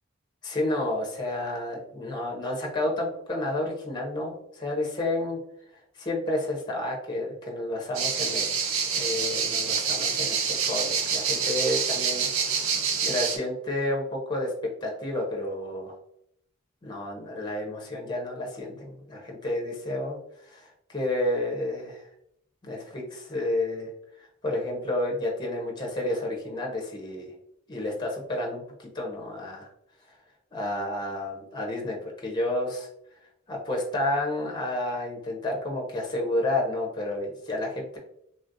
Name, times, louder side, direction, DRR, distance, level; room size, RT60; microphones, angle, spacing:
voice 1, 0.4-5.4 6.0-12.5 13.0-14.5 14.8-16.0 16.8-20.2 20.5-22.0 22.6-23.9 24.2-27.3 27.7-29.7 30.5-32.9 33.5-38.0, left 1 dB, 20° left, 0 dB, 0.6 m, -30 dB
sound 1, 7.9-13.4, right 6 dB, 85° right, 0.5 m, -27 dB
3.2 x 2.3 x 2.5 m, 0.74 s
head